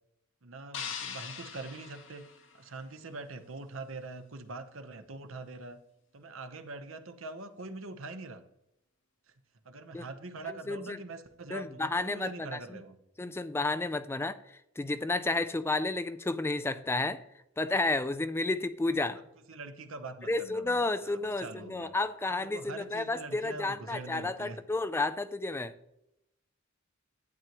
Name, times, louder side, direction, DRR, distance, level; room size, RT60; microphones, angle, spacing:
voice 1, 0.4-2.3 2.5-5.8 6.1-8.4 9.6-13.0 19.1-19.2 19.5-21.9 22.3-24.6, right 2 dB, 80° right, 8 dB, 1.0 m, -43 dB
sound 1, 0.7-3.0, left 6 dB, 65° left, 1.4 m, -42 dB
voice 2, 10.5-11.0 11.5-12.8 13.2-14.4 14.8-17.2 17.6-19.2 20.3-25.7, left 2 dB, 10° left, 12 dB, 0.4 m, -31 dB
12.0 x 9.0 x 3.0 m, 0.83 s
head